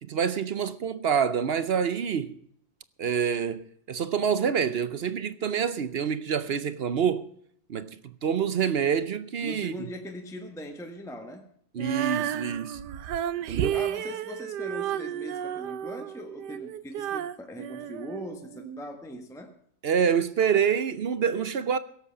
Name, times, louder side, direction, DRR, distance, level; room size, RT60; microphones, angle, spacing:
voice 1, 0.0-2.4 3.0-7.3 7.7-8.0 8.2-9.7 11.7-12.8 13.5-13.8 19.8-21.8, right 7 dB, 55° right, 0.7 m, -27 dB
voice 2, 9.4-11.5 13.6-19.5, equal, ahead, 1.3 m, -40 dB
Female singing, 11.8-18.8, right 10 dB, 90° right, 1.4 m, -32 dB
17.5 x 8.2 x 6.6 m
omnidirectional pair, 1.7 m